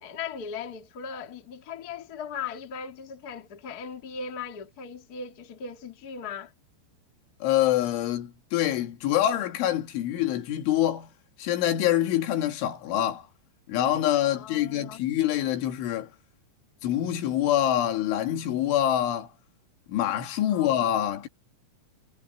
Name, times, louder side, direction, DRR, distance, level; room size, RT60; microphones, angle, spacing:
voice 1, 0.0-6.5 14.3-15.0 20.5-20.9, left 6 dB, 40° left, 1.3 m, -38 dB
voice 2, 7.4-11.1 11.4-13.3 13.7-16.1 16.8-19.3 19.9-21.3, left 12 dB, 80° left, 4.4 m, -25 dB
omnidirectional pair, 5.5 m